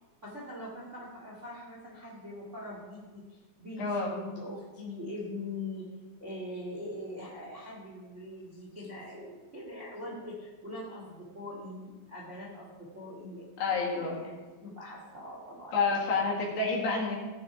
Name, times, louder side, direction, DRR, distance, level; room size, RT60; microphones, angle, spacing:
voice 1, 0.2-5.8 6.2-15.7 16.1-16.2, left 1 dB, 35° right, -4 dB, 1.0 m, -42 dB
voice 2, 3.8-4.1 13.6-14.2 15.7-17.2, left 4 dB, 60° left, -3 dB, 3.8 m, -29 dB
16.5 x 7.0 x 5.1 m, 1.3 s
omnidirectional pair, 5.7 m